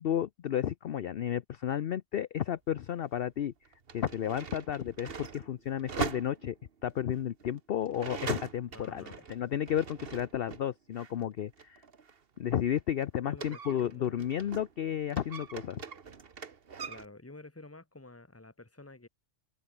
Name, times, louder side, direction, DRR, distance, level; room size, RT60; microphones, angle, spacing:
voice 1, 0.0-3.5 3.9-6.6 6.8-9.0 9.3-11.8 12.4-15.8, left 10 dB, 55° left, 0.8 m, -32 dB
sound 1, 2.7-2.8 3.7-10.7 11.0-14.8 15.1-17.1, right 6 dB, 50° right, 1.5 m, -42 dB
voice 2, 8.7-9.3 13.3-14.3 16.8-19.1, left 2 dB, 10° left, 1.4 m, -50 dB
open air
omnidirectional pair, 1.3 m